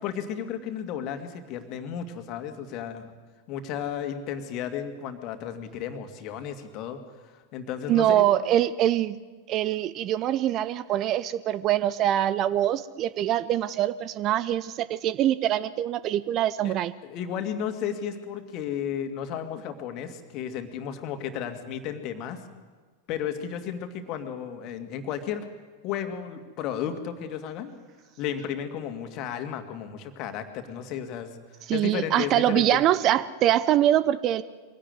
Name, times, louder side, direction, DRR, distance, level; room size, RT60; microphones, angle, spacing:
voice 1, 0.0-3.1 3.5-8.3 16.6-16.8 17.0-22.4 23.1-25.5 25.8-27.7 28.2-31.4 31.7-32.8, left 8 dB, 40° left, 7 dB, 2.3 m, -33 dB
voice 2, 7.9-9.2 9.5-16.9 31.7-34.4, right 12 dB, 35° right, 17 dB, 0.7 m, -24 dB
23.5 x 17.0 x 9.6 m, 1.4 s
figure-of-eight pair, 90°, 0 cm